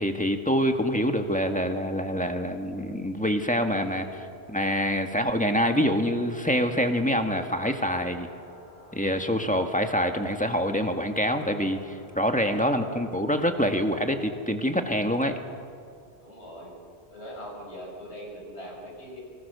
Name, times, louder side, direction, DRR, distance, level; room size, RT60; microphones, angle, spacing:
voice 1, 0.0-4.1 4.5-8.3 8.9-15.4, equal, 5° left, 5 dB, 1.7 m, -26 dB
voice 2, 3.9-4.2 12.3-12.7 16.2-16.8 17.1-19.2, equal, 70° left, -1 dB, 6.8 m, -42 dB
sound 1, 4.4-13.2, left 1 dB, 35° left, 7.5 m, -52 dB
27.5 x 24.5 x 6.9 m, 2.3 s
omnidirectional pair, 1.1 m